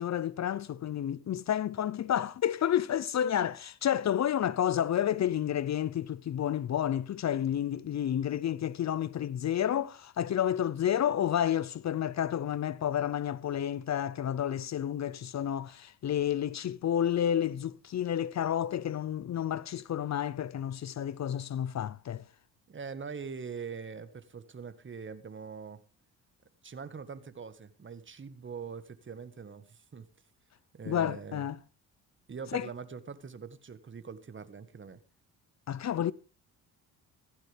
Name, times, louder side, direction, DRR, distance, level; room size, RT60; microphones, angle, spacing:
voice 1, 0.0-22.2 30.9-31.6 32.5-32.7 35.7-36.1, left 10 dB, 45° left, 0.7 m, -30 dB
voice 2, 22.7-25.8 26.6-30.1 30.7-31.4 32.3-35.0, right 6 dB, 30° right, 1.6 m, -43 dB
16.0 x 14.5 x 3.5 m
cardioid pair, 85°, 37 cm